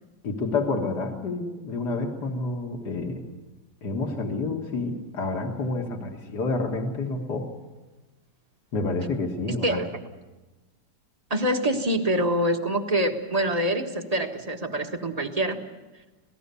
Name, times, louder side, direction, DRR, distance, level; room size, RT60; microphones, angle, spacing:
voice 1, 0.2-3.2 3.8-7.5 8.7-9.8, left 3 dB, 65° left, 2 dB, 2.3 m, -29 dB
voice 2, 9.5-9.9 11.3-15.6, right 1 dB, 20° right, 5 dB, 1.4 m, -25 dB
27.0 x 18.5 x 6.9 m, 1.2 s
omnidirectional pair, 1.9 m